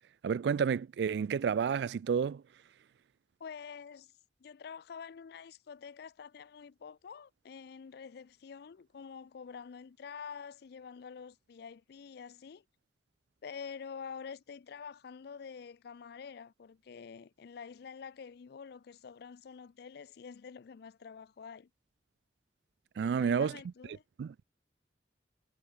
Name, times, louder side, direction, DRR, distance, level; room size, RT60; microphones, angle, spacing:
voice 1, 0.2-2.4 23.0-23.6 24.2-24.3, right 6 dB, 70° right, 0.3 m, -30 dB
voice 2, 3.4-4.1 4.4-12.6 13.4-21.7 23.0-24.0, left 6 dB, 65° left, 0.4 m, -47 dB
head